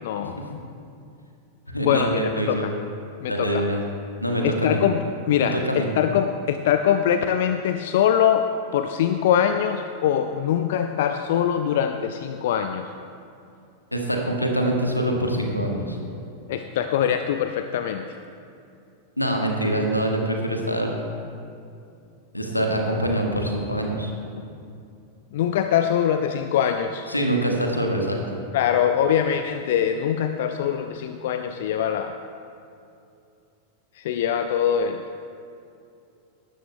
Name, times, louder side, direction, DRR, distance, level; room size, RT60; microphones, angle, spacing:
voice 1, 0.0-0.6 1.8-2.7 3.2-3.6 4.4-12.9 16.5-18.1 24.4-24.5 25.3-27.1 28.5-32.2 34.0-35.0, left 9 dB, 55° left, 8 dB, 0.4 m, -23 dB
voice 2, 1.7-2.7 3.2-3.8 4.2-4.8 5.5-5.9 13.9-16.0 19.2-21.0 22.3-24.1 27.1-28.2, right 1 dB, 85° left, 1 dB, 1.4 m, -24 dB
18.5 x 12.5 x 2.2 m, 2.6 s
figure-of-eight pair, 90°, 0 cm